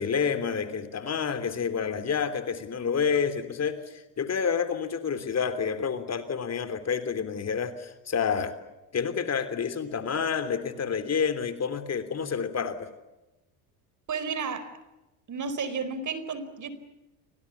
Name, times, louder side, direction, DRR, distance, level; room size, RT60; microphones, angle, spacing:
voice 1, 0.0-8.5 8.9-12.9, left 6 dB, 35° left, 11 dB, 3.3 m, -29 dB
voice 2, 14.1-14.7 15.3-16.7, right 5 dB, 40° right, 13 dB, 4.6 m, -32 dB
29.5 x 25.0 x 7.2 m, 1.0 s
hypercardioid pair, 75°, 44 cm